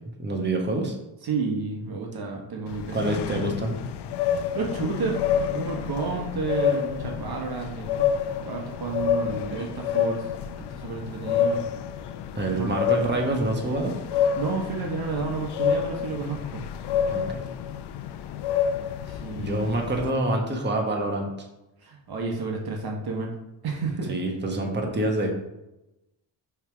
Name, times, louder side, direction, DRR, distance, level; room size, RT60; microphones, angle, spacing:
voice 1, 0.2-0.9 2.9-3.7 12.3-14.0 17.1-17.4 19.4-21.3 24.1-25.3, right 2 dB, 25° right, 1 dB, 1.4 m, -26 dB
voice 2, 1.2-3.5 4.2-5.2 5.5-8.1 8.4-10.3 10.7-11.6 12.5-12.7 14.2-16.6 19.0-19.6 21.8-23.3 23.6-24.1, right 4 dB, 55° right, 0 dB, 1.4 m, -31 dB
sound 1, 2.7-20.1, left 8 dB, 65° left, 0.6 m, -28 dB
5.7 x 3.6 x 4.6 m, 0.94 s
cardioid pair, 75°, 44 cm